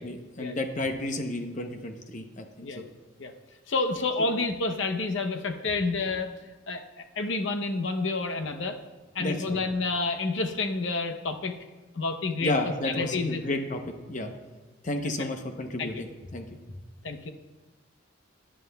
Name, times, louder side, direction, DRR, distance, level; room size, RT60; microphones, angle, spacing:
voice 1, 0.0-2.8 9.2-9.6 12.4-13.8 14.1-14.3 14.8-16.8, left 1 dB, 40° left, 6 dB, 0.8 m, -32 dB
voice 2, 3.7-6.4 6.7-8.8 9.1-11.5 11.9-12.5 12.8-13.4 15.8-16.0 17.0-17.3, left 3 dB, 70° left, 6 dB, 0.7 m, -29 dB
13.0 x 10.0 x 2.3 m, 1.2 s
head